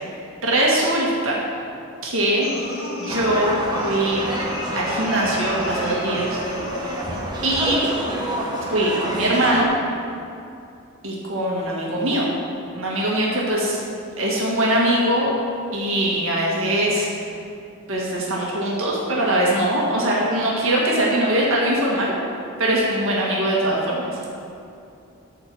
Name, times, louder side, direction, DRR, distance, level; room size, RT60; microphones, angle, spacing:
voice 1, 0.4-1.4 2.0-2.5 3.0-3.5 3.8-4.2 4.8-6.4 7.4-7.9 8.7-9.7 11.0-12.3 12.7-13.8 14.2-15.3 15.7-17.1 17.9-22.1 22.6-24.3, right 1 dB, 70° right, -4 dB, 1.9 m, -21 dB
sound 1, 2.4-7.3, left 1 dB, 80° left, 2.3 m, -33 dB
sound 2, 3.1-9.6, right 1 dB, 20° right, 1.2 m, -28 dB
13.0 x 4.6 x 7.1 m, 2.6 s
head